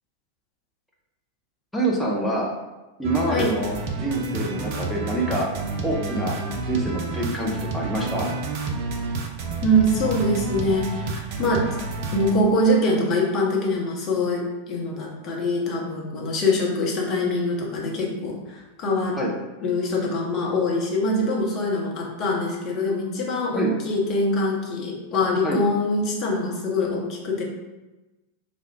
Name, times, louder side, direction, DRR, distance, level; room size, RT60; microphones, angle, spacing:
voice 1, 1.7-2.5 3.0-5.5 5.8-6.3 6.7-8.3 19.2-19.3 23.5-23.7 25.4-25.6, right 1 dB, 5° left, -3 dB, 0.7 m, -26 dB
sound 1, 3.0-12.3, right 3 dB, 45° right, 0.5 m, -30 dB
voice 2, 9.6-11.7 12.1-14.4 14.7-19.2 19.6-27.4, left 1 dB, 35° left, -2 dB, 0.9 m, -24 dB
3.3 x 2.4 x 4.4 m, 1.1 s
figure-of-eight pair, 90°, 0 cm